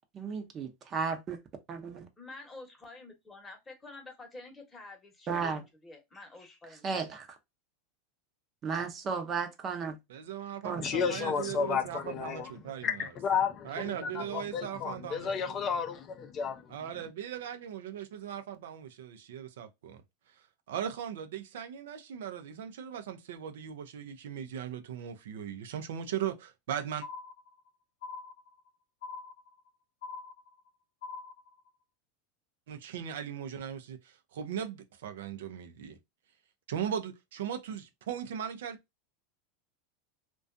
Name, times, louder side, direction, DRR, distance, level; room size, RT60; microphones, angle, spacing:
voice 1, 0.2-1.4 1.7-2.1 5.3-5.6 6.8-7.3 8.6-10.0 10.6-10.9, right 5 dB, 35° right, 0.6 m, -34 dB
voice 2, 2.2-6.8, left 2 dB, 20° left, 0.9 m, -49 dB
voice 3, 10.1-13.1 13.6-15.7 16.7-20.0 20.7-27.1 32.7-36.0 36.7-38.8, right 9 dB, 80° right, 0.4 m, -38 dB
voice 4, 10.8-12.5 12.8-16.7, left 6 dB, 35° left, 0.4 m, -32 dB
sound 1, 27.0-27.7 28.0-28.7 29.0-29.7 30.0-30.7 31.0-31.7, left 4 dB, 80° left, 0.7 m, -44 dB
2.4 x 2.2 x 2.5 m
supercardioid pair, 120°, 0 cm